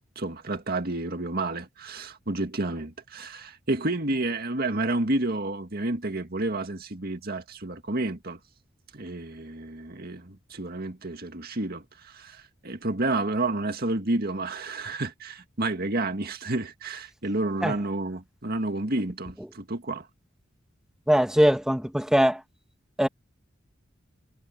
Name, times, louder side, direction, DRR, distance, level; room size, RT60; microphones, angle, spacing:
voice 1, 0.2-8.4 8.9-20.1, right 2 dB, 50° right, 2.1 m, -30 dB
voice 2, 21.1-22.4 23.0-23.1, equal, 5° right, 2.0 m, -21 dB
head